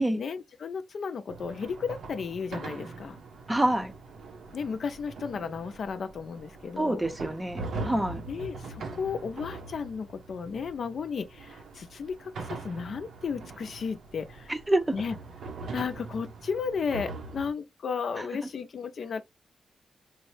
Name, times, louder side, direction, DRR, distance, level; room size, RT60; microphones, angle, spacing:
voice 1, 0.2-3.2 4.5-7.0 8.3-14.5 14.9-15.1 15.7-19.2, left 6 dB, 55° left, 0.4 m, -34 dB
sound 1, 1.3-17.5, right 3 dB, 75° right, 0.8 m, -42 dB
voice 2, 3.5-3.9 6.8-8.2 14.5-14.9 18.2-18.3, right 1 dB, 10° right, 0.6 m, -27 dB
4.4 x 2.0 x 3.2 m
wide cardioid pair, 155°, 0 cm